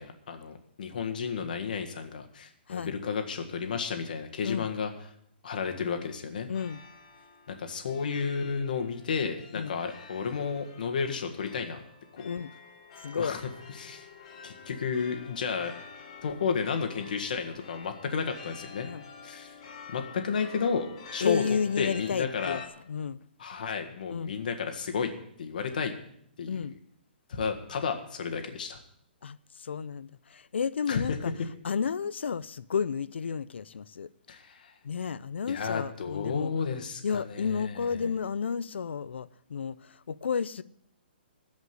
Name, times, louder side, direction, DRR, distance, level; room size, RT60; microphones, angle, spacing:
voice 1, 0.0-4.9 5.4-6.5 7.5-11.8 12.1-12.3 13.1-13.4 13.7-14.1 14.4-15.7 16.2-18.9 19.2-19.6 19.9-21.4 21.8-22.6 23.4-25.1 25.4-25.9 26.4-26.7 27.3-28.8 30.9-31.2 34.3-34.7 35.5-38.1, left 6 dB, 50° left, 1.7 m, -32 dB
voice 2, 6.5-6.8 9.5-9.7 12.2-12.5 13.0-13.4 18.8-19.0 21.2-22.6 22.9-23.2 24.1-24.3 26.5-26.7 29.2-31.3 31.6-34.1 34.8-36.5 37.0-40.6, left 6 dB, 85° left, 0.6 m, -32 dB
sound 1, 6.5-22.7, left 4 dB, 35° left, 1.4 m, -48 dB
14.5 x 5.3 x 9.6 m
hypercardioid pair, 175°, 6 cm